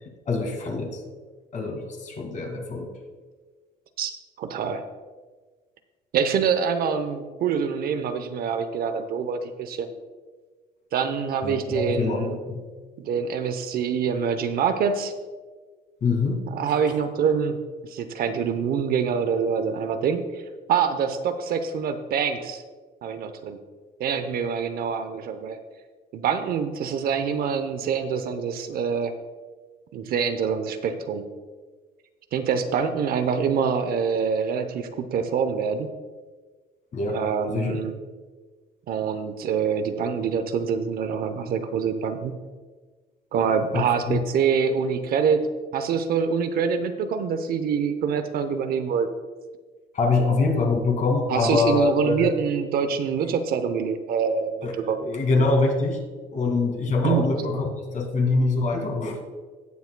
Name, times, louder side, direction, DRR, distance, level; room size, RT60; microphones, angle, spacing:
voice 1, 0.3-1.0 1.5-2.9 11.4-12.7 16.0-16.4 36.9-37.2 37.5-37.8 43.7-44.2 49.9-52.3 54.6-56.0 56.3-59.2, left 3 dB, 50° left, 2 dB, 2.2 m, -24 dB
voice 2, 4.0-4.8 6.1-9.9 10.9-12.4 13.0-15.1 16.5-20.4 20.7-22.6 23.0-23.6 24.0-25.6 26.1-29.1 29.9-31.3 32.3-35.9 37.1-38.0 38.9-42.3 43.3-45.5 45.7-49.1 51.3-55.0 57.0-57.3, right 6 dB, 65° right, 9 dB, 0.8 m, -25 dB
17.5 x 7.2 x 2.2 m, 1.4 s
cardioid pair, 110°, 17 cm